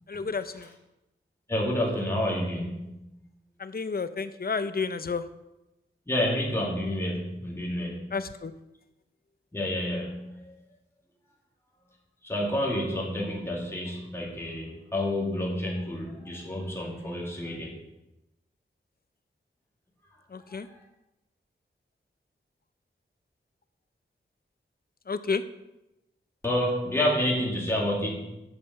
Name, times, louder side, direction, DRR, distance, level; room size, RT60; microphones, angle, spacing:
voice 1, 0.1-0.7 3.6-5.2 8.1-8.5 20.3-20.7 25.1-25.4, left 5 dB, 50° left, 12 dB, 0.6 m, -31 dB
voice 2, 1.5-3.2 6.1-8.2 9.5-10.5 12.2-17.8 20.5-20.7 26.4-28.3, left 1 dB, 10° left, -4 dB, 2.5 m, -29 dB
8.6 x 6.7 x 5.4 m, 0.94 s
wide cardioid pair, 80°, 20 cm